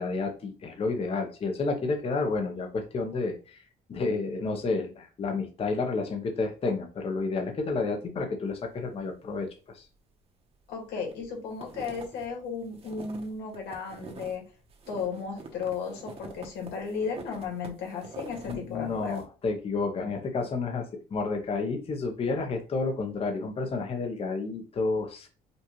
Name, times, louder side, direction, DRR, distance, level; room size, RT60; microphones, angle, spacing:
voice 1, 0.0-3.6 3.9-9.9 18.5-25.3, left 3 dB, 35° left, 4 dB, 0.7 m, -30 dB
sound 1, 10.6-11.2 11.5-14.4 14.7-18.5 18.9-19.2, right 4 dB, 35° right, 0.9 m, -46 dB
voice 2, 10.7-14.4 14.9-19.2, left 5 dB, 90° left, 0 dB, 1.7 m, -35 dB
5.2 x 2.4 x 3.0 m, 0.34 s
cardioid pair, 110°, 17 cm